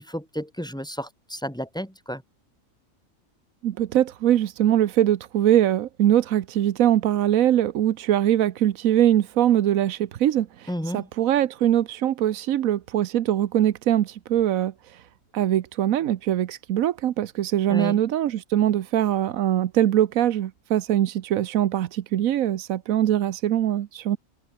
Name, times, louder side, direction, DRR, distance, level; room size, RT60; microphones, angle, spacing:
voice 1, 0.0-2.2 10.7-11.1 17.7-18.0, equal, 5° left, 3.1 m, -32 dB
voice 2, 3.6-15.1 15.3-24.2, right 11 dB, 90° right, 1.2 m, -22 dB
omnidirectional pair, 1.4 m